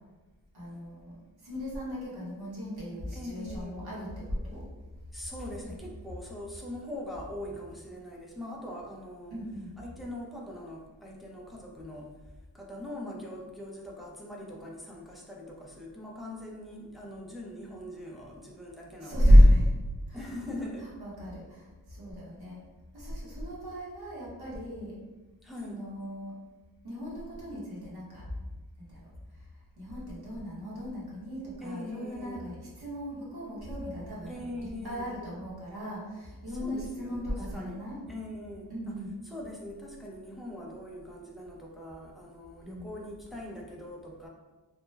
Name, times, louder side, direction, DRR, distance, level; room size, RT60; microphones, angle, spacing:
voice 1, 0.5-4.6 9.3-9.7 19.0-19.7 20.1-20.3 20.8-22.6 22.9-25.0 25.6-26.3 26.8-28.3 28.8-29.0 29.3-29.5 29.8-38.0 38.7-39.1 42.6-43.0, equal, 70° right, -6 dB, 1.1 m, -30 dB
voice 2, 3.1-3.8 5.1-9.4 9.8-12.1 12.5-19.4 20.1-20.9 25.4-25.9 31.6-32.5 34.3-35.1 36.5-37.8 38.1-38.9 39.2-44.3, left 1 dB, ahead, -3 dB, 0.4 m, -42 dB
3.0 x 2.1 x 3.2 m, 1.2 s
wide cardioid pair, 150°, 40 cm